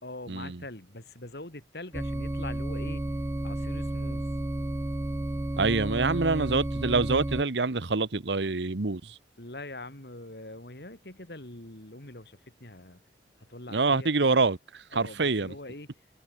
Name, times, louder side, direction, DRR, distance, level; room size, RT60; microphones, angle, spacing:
voice 1, 0.0-3.0 3.4-4.3 6.3-6.6 9.4-13.0 13.4-14.5 14.9-15.9, left 2 dB, 65° left, 3.7 m, -43 dB
sound 1, 1.9-7.4, right 1 dB, 15° right, 0.3 m, -32 dB
voice 2, 5.6-9.0 13.7-14.6 14.9-15.5, right 3 dB, 85° right, 1.1 m, -25 dB
head